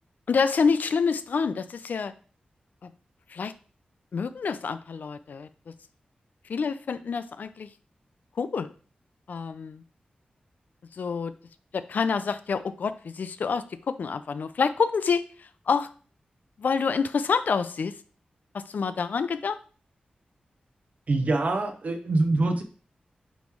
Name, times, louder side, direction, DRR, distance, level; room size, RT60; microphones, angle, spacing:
voice 1, 0.3-2.1 2.8-2.9 3.3-3.5 4.1-5.5 6.5-7.7 8.4-8.7 9.3-9.8 11.0-11.3 11.7-15.3 15.7-15.9 16.6-17.9 18.5-19.6, left 5 dB, 75° left, 12 dB, 0.4 m, -27 dB
voice 2, 21.1-22.6, right 2 dB, 55° right, 5 dB, 0.8 m, -24 dB
9.0 x 3.1 x 3.5 m, 0.39 s
wide cardioid pair, 115°, 3 cm